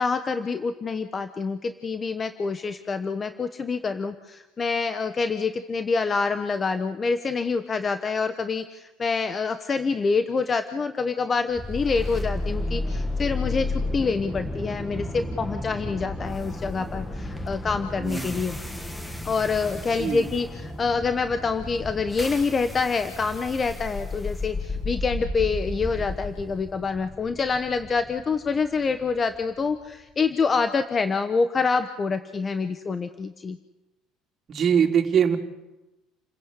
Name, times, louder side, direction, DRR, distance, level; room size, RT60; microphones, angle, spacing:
voice 1, 0.0-18.6 19.2-33.6, left 4 dB, 30° left, 9 dB, 1.2 m, -26 dB
sound 1, 11.6-29.6, left 2 dB, 10° left, 2.2 m, -33 dB
voice 2, 34.5-35.4, right 8 dB, 40° right, 2 dB, 3.4 m, -22 dB
29.5 x 15.5 x 8.4 m, 1.1 s
supercardioid pair, 100°, 0 cm